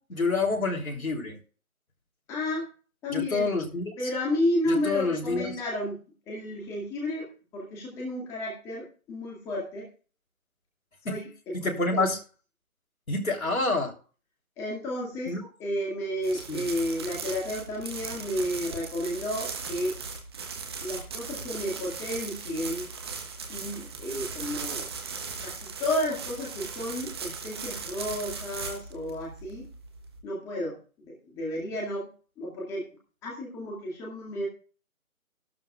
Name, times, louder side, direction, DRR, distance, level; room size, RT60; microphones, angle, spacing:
voice 1, 0.1-1.4 3.1-4.1 4.7-5.5 11.1-11.2 11.5-12.2 13.1-13.9 15.3-15.4 16.5-16.7, left 3 dB, 75° left, 2 dB, 3.6 m, -28 dB
voice 2, 2.3-2.7 3.0-3.5 4.0-6.0 6.3-7.3 7.5-9.9 11.0-12.1 14.6-19.9 20.8-22.9 23.5-24.9 25.4-29.7 30.2-30.7 31.1-32.1 32.4-32.8 33.2-34.5, left 1 dB, 5° left, -3 dB, 2.1 m, -32 dB
sound 1, 16.2-30.2, right 5 dB, 20° right, 1.3 m, -38 dB
14.0 x 12.5 x 2.4 m, 0.38 s
figure-of-eight pair, 160°, 43 cm